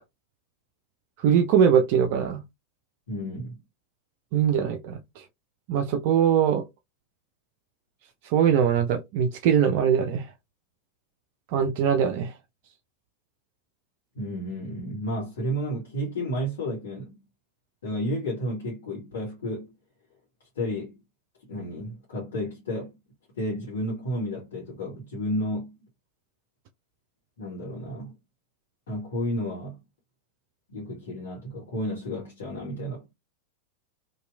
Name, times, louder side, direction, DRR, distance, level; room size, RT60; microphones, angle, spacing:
voice 1, 1.2-2.4 4.3-5.2 5.7-6.6 8.2-10.3 11.5-12.3, right 8 dB, 45° right, 0.4 m, -22 dB
voice 2, 3.1-3.6 14.1-17.1 17.8-19.7 20.5-21.0 21.5-22.9 23.3-25.8 27.4-28.1 28.9-29.8 30.7-33.1, equal, 60° left, 1.2 m, -32 dB
2.9 x 2.5 x 2.2 m
figure-of-eight pair, 90°, 0 cm